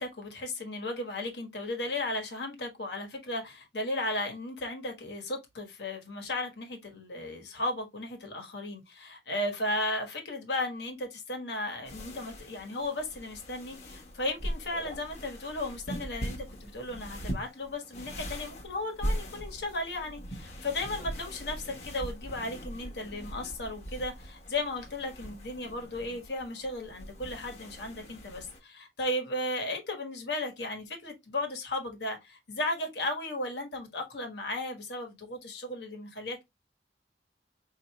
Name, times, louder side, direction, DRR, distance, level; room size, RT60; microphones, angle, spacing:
voice 1, 0.0-36.4, left 1 dB, 70° left, 1.3 m, -35 dB
sound 1, 11.8-28.6, equal, 40° left, 1.1 m, -40 dB
4.6 x 2.7 x 3.0 m
head